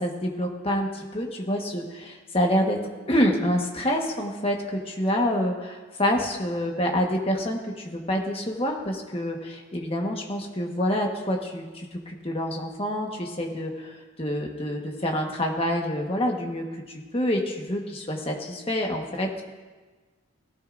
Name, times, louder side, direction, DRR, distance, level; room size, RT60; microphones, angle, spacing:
voice 1, 0.0-2.8 3.1-19.4, equal, 30° left, 1 dB, 1.4 m, -27 dB
17.0 x 13.0 x 2.6 m, 1.3 s
head